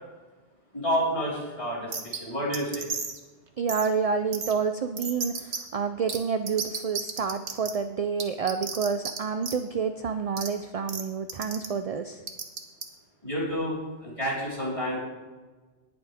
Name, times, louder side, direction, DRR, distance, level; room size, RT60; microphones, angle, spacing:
voice 1, 0.7-2.9 13.2-15.0, equal, 30° left, -7 dB, 4.4 m, -29 dB
sound 1, 1.9-2.2 2.5-3.2 3.7-3.9 4.3-4.5 5.0-5.6 6.1-6.2 6.5-7.7 8.2-9.2 9.4-9.6 10.4-10.5 10.9-11.0 11.3-11.7 12.3-12.8, right 5 dB, 80° right, 1.4 m, -32 dB
voice 2, 3.6-12.2, right 6 dB, 50° right, 9 dB, 0.4 m, -29 dB
19.0 x 7.9 x 3.5 m, 1.3 s
omnidirectional pair, 1.1 m